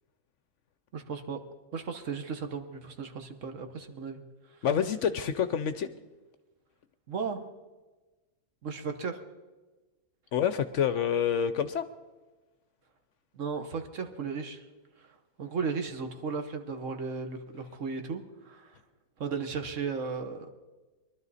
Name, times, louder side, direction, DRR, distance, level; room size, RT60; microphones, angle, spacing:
voice 1, 0.9-1.4 1.7-4.2 7.1-7.4 8.6-9.2 13.3-14.6 15.0-15.1 15.4-18.8 19.2-20.5, right 5 dB, 60° right, 6 dB, 1.4 m, -35 dB
voice 2, 4.6-5.9 10.3-11.9, left 8 dB, 65° left, 12 dB, 0.9 m, -27 dB
22.5 x 12.0 x 4.1 m, 1.2 s
omnidirectional pair, 1.6 m